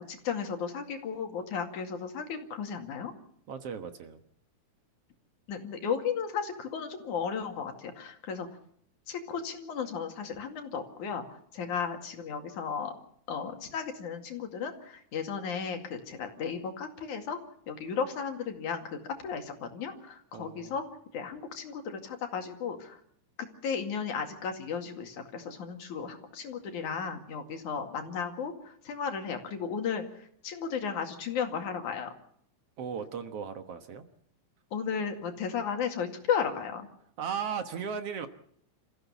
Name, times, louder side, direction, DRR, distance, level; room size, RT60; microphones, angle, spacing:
voice 1, 0.0-3.1 5.5-8.5 9.1-11.2 11.5-12.9 13.3-17.4 17.7-20.9 21.1-23.0 23.6-30.0 30.4-32.1 34.7-36.9, left 6 dB, 80° left, 5 dB, 3.7 m, -34 dB
voice 2, 3.5-4.2 20.3-20.7 32.8-34.0 37.2-38.3, right 7 dB, 60° right, 8 dB, 2.1 m, -36 dB
27.5 x 15.0 x 7.1 m, 0.66 s
omnidirectional pair, 3.5 m